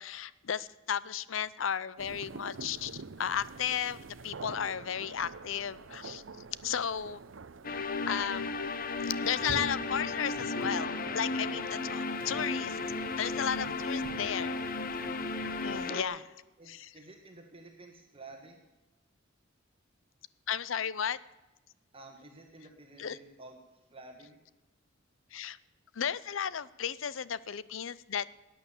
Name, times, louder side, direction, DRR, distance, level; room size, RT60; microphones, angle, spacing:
voice 1, 0.0-6.2 6.6-7.2 8.1-8.6 9.0-12.8 13.2-14.6 15.0-15.1 15.6-16.2 16.7-16.9 20.5-21.2 23.0-23.2 25.3-25.6 25.9-28.3, left 8 dB, 75° left, 18 dB, 0.6 m, -34 dB
sound 1, 2.0-15.9, right 4 dB, 70° right, 0.7 m, -47 dB
sound 2, 7.6-16.0, left 3 dB, 45° left, 0.9 m, -34 dB
voice 2, 15.9-16.2 16.6-18.6 21.9-23.6 23.9-24.4, right 3 dB, 30° right, 2 dB, 1.8 m, -50 dB
17.5 x 9.4 x 7.3 m, 1.0 s
head